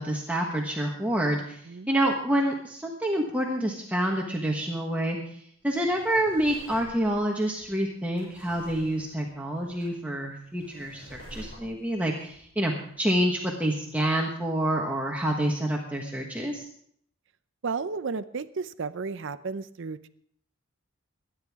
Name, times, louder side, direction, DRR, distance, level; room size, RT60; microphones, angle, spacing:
voice 1, 0.0-16.7, right 1 dB, 5° right, -1 dB, 1.3 m, -28 dB
Drawer open or close, 5.6-13.3 13.8-13.9, equal, 40° left, 7.8 m, -50 dB
voice 2, 17.6-20.1, right 4 dB, 60° right, 13 dB, 0.6 m, -33 dB
22.5 x 10.0 x 3.6 m, 0.64 s
head